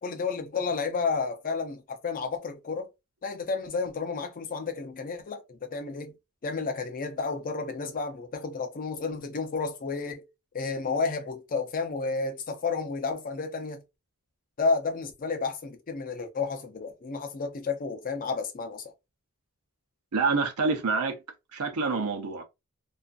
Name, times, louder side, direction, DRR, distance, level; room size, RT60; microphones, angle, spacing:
voice 1, 0.0-2.9 3.2-6.1 6.4-10.3 10.5-13.8 14.6-18.8, left 4 dB, 40° left, 0.5 m, -31 dB
voice 2, 20.1-21.2 21.5-22.4, right 4 dB, 90° right, 0.7 m, -27 dB
2.4 x 2.4 x 2.4 m
head